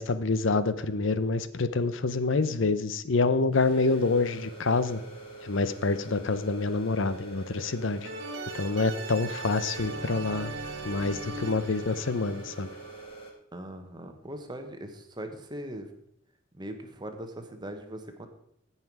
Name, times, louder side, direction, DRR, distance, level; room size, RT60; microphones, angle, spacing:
voice 1, 0.0-5.0 5.4-8.1 8.5-10.5 10.8-12.7, left 3 dB, 65° left, 13 dB, 0.7 m, -27 dB
sound 1, 3.5-13.3, right 3 dB, 25° left, 2.3 m, -45 dB
sound 2, 8.0-13.0, right 2 dB, 60° right, 1.3 m, -39 dB
voice 2, 13.5-15.9 16.5-18.3, right 1 dB, 20° right, 6 dB, 1.2 m, -40 dB
16.0 x 5.8 x 4.7 m, 0.75 s
head